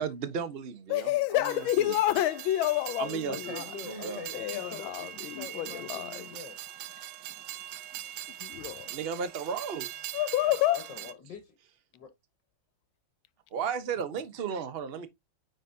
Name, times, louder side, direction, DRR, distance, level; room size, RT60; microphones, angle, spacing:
voice 1, 0.0-2.0 3.0-3.6 3.9-4.2 8.9-10.1 13.5-15.1, right 6 dB, 40° right, 0.9 m, -35 dB
voice 2, 0.9-3.3 3.5-3.6 3.9-4.0 4.3-6.2 8.4-8.9 10.1-10.8, left 14 dB, 85° left, 1.4 m, -29 dB
Train, 1.4-11.1, right 12 dB, 75° right, 1.1 m, -42 dB
voice 3, 3.3-6.6 8.2-8.3 10.7-11.6 11.9-12.1 15.0-15.1, left 6 dB, 65° left, 1.8 m, -44 dB
9.3 x 4.0 x 2.7 m
omnidirectional pair, 2.2 m